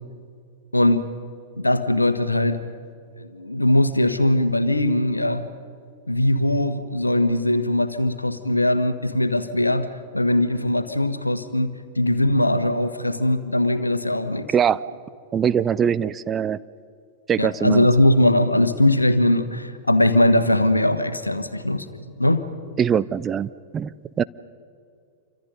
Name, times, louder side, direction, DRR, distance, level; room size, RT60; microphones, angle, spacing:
voice 1, 0.7-1.1 1.6-2.6 3.2-5.5 6.1-9.9 10.1-14.5 17.4-21.9 22.2-22.4, left 1 dB, 85° left, 11 dB, 1.4 m, -20 dB
voice 2, 15.3-16.6 17.3-17.9 22.8-24.2, right 8 dB, 20° right, 15 dB, 0.5 m, -22 dB
28.5 x 25.5 x 5.5 m, 2.4 s
figure-of-eight pair, 95°, 0 cm